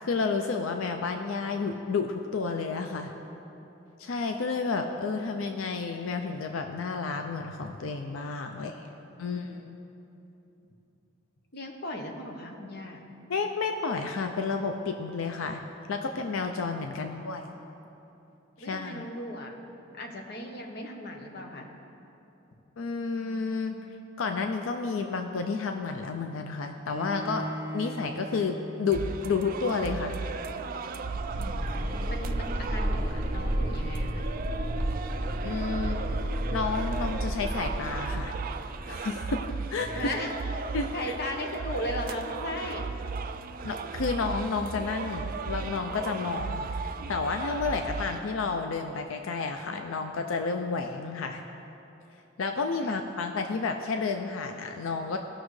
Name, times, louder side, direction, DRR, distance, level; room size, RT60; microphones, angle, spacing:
voice 1, 0.0-3.1 4.0-8.8 9.2-9.8 13.3-15.6 15.9-17.5 18.7-19.0 22.8-27.5 27.7-28.5 28.8-30.1 35.4-36.0 36.5-38.3 38.9-39.4 39.7-40.0 40.7-41.1 43.6-51.4 52.4-55.2, left 4 dB, 90° left, 5 dB, 0.5 m, -31 dB
voice 2, 9.1-9.5 11.5-13.0 17.0-17.3 18.6-19.6 19.9-21.7 31.4-34.3 39.9-40.4 40.9-42.9 52.8-52.9, left 1 dB, 55° left, 3 dB, 1.0 m, -37 dB
Bowed string instrument, 26.8-29.8, right 1 dB, 5° right, 2.2 m, -39 dB
sound 1, 28.9-48.2, right 4 dB, 45° right, 0.4 m, -36 dB
sound 2, 31.2-40.0, equal, 30° right, 0.8 m, -32 dB
17.5 x 6.1 x 3.2 m, 3.0 s
head